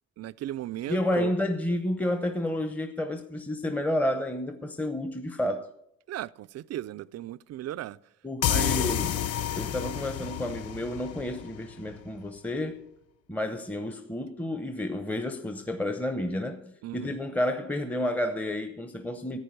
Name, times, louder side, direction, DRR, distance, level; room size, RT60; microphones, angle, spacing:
voice 1, 0.2-1.3 6.1-8.0 8.4-8.8 16.8-17.2, right 13 dB, 55° right, 0.4 m, -36 dB
voice 2, 0.9-5.7 8.2-9.2 9.6-12.8 13.3-19.4, left 1 dB, 5° left, 0.8 m, -30 dB
sound 1, 8.4-11.9, left 10 dB, 55° left, 0.5 m, -30 dB
10.5 x 9.1 x 6.6 m
cardioid pair, 90°, 30 cm